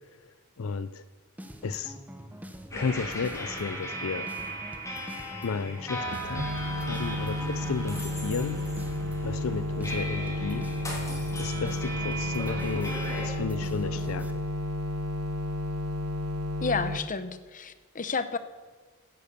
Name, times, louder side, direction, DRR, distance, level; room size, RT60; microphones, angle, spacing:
voice 1, 0.6-1.0 1.6-2.0 2.7-4.3 5.4-6.5 6.8-8.6 9.2-10.7 11.4-14.5, left 5 dB, 70° left, 13 dB, 0.5 m, -33 dB
sound 1, 1.4-14.3, equal, 10° right, 1.0 m, -45 dB
sound 2, 2.7-13.3, right 1 dB, 15° left, 4.0 m, -37 dB
sound 3, 6.4-17.0, left 1 dB, 75° right, 1.1 m, -32 dB
voice 2, 16.6-18.4, left 4 dB, 40° left, 12 dB, 0.9 m, -31 dB
16.5 x 10.5 x 6.7 m, 1.4 s
head